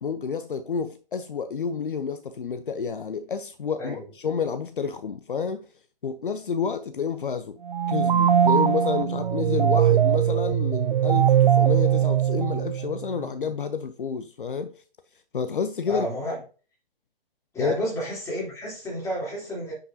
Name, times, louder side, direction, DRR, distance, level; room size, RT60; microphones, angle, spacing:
voice 1, 0.0-5.7 6.0-7.6 7.9-14.7 15.3-16.1 17.6-17.7, left 6 dB, 65° left, 0.7 m, -29 dB
Sine Melody, 7.7-13.1, right 9 dB, 55° right, 0.5 m, -21 dB
voice 2, 15.9-16.4 17.5-19.7, equal, 10° left, 3.2 m, -31 dB
9.8 x 5.5 x 2.7 m
figure-of-eight pair, 130°, 29 cm